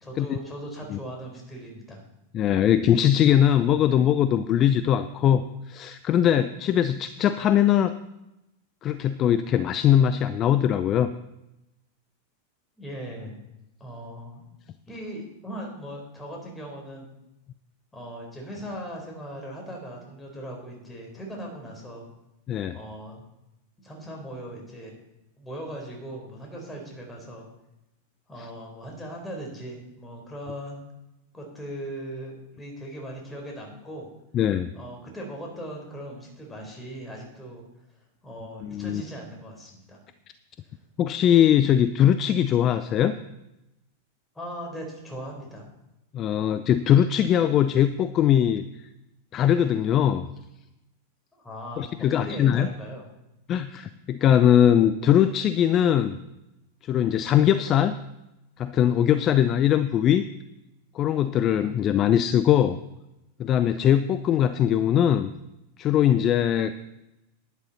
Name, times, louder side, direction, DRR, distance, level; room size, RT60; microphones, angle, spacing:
voice 1, 0.0-2.0 12.8-13.4 13.8-14.5 14.9-17.1 17.9-22.0 22.7-23.2 23.8-24.9 25.4-27.5 28.3-30.9 31.3-34.1 34.7-37.6 38.2-40.0 44.3-45.7 51.3-53.1, equal, 10° left, 0 dB, 4.1 m, -39 dB
voice 2, 2.3-7.9 8.8-11.1 22.5-22.8 34.3-34.7 38.6-39.0 41.0-43.2 46.1-48.6 49.3-50.3 51.8-52.7 53.5-56.2 56.8-58.0 58.6-60.3 60.9-62.8 63.4-65.3 65.8-66.7, left 10 dB, 35° left, 13 dB, 0.5 m, -21 dB
11.0 x 10.5 x 4.2 m, 0.91 s
figure-of-eight pair, 95°, 0 cm